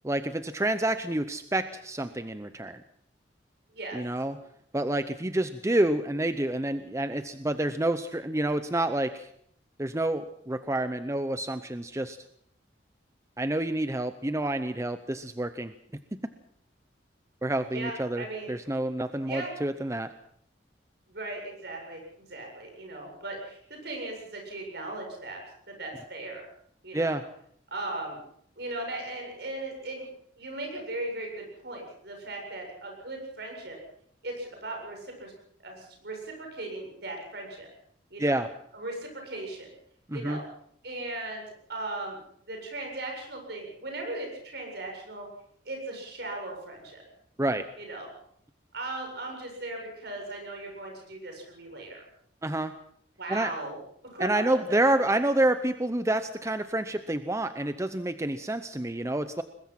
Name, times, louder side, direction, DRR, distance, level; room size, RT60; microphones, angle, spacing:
voice 1, 0.0-2.8 3.9-4.4 4.7-9.3 9.8-12.2 13.4-15.7 17.4-20.1 26.9-27.2 38.2-38.5 40.1-40.4 47.4-47.7 52.4-52.7 53.3-53.5 54.2-59.4, right 1 dB, 15° right, 10 dB, 0.7 m, -28 dB
voice 2, 17.7-18.5 19.3-19.5 21.1-25.4 25.7-26.4 26.8-27.2 27.7-28.2 28.6-30.1 30.4-33.8 34.2-35.3 35.6-37.7 38.1-38.4 38.7-39.7 40.1-40.4 40.8-41.4 41.7-42.2 42.5-45.3 45.6-47.0 47.8-48.1 48.7-52.0 53.2-53.8 54.0-54.4, right 2 dB, 60° right, 2 dB, 7.7 m, -37 dB
22.0 x 21.0 x 5.9 m, 0.67 s
head